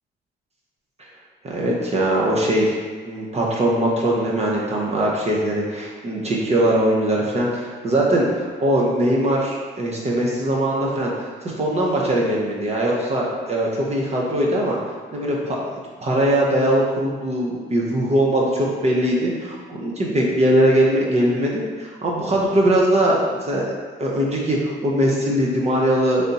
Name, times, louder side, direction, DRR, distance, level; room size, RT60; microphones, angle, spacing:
voice 1, 1.4-2.8 3.0-14.8 15.1-15.6 16.0-23.7 24.0-26.3, right 1 dB, 35° right, -4 dB, 0.7 m, -21 dB
3.4 x 2.7 x 3.9 m, 1.5 s
cardioid pair, 90°, 20 cm